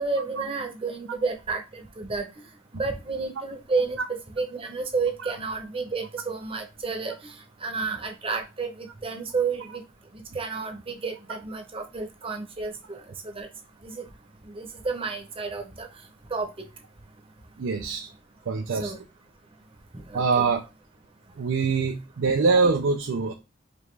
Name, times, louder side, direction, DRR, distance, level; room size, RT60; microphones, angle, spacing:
voice 1, 0.0-2.3 2.7-4.0 4.4-7.4 7.6-9.8 10.3-13.5 13.8-14.0 14.5-15.9 16.3-16.5 18.8-19.0 20.1-20.5, right 4 dB, 30° right, 4 dB, 0.8 m, -31 dB
voice 2, 17.6-18.1 18.5-18.9 20.1-20.6 21.4-23.3, right 4 dB, 80° right, 4 dB, 0.5 m, -24 dB
5.1 x 2.4 x 3.2 m, 0.26 s
head